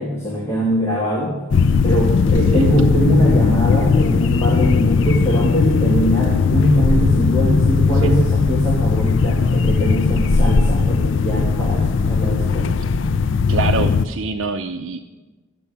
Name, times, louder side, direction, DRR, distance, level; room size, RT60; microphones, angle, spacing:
voice 1, 0.0-1.4 1.8-12.8, equal, 15° left, -5 dB, 2.1 m, -21 dB
sound 1, 1.5-14.1, left 4 dB, 65° left, 0.4 m, -17 dB
voice 2, 13.5-15.0, right 4 dB, 80° right, 4 dB, 0.6 m, -25 dB
12.5 x 7.0 x 8.4 m, 1.2 s
head